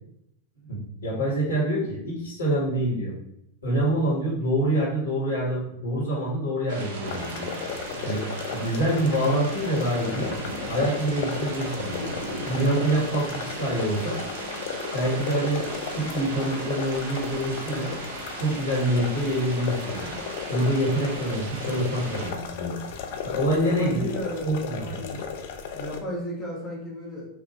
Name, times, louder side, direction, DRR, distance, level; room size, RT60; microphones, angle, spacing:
voice 1, 0.7-3.1 3.6-7.5 8.0-8.2 8.5-10.3 10.7-12.0 12.4-14.2 14.9-17.9 18.4-20.1 20.5-22.7 23.2-24.1 24.4-25.0, right 1 dB, 70° left, -5 dB, 1.4 m, -26 dB
sound 1, 6.7-22.3, right 2 dB, 55° right, 0.7 m, -37 dB
sound 2, 7.0-26.0, left 7 dB, 50° left, 0.4 m, -35 dB
voice 2, 23.6-24.5 24.8-25.3 25.7-27.3, equal, 5° left, -7 dB, 1.1 m, -34 dB
4.9 x 2.4 x 2.4 m, 0.79 s
figure-of-eight pair, 90°, 0 cm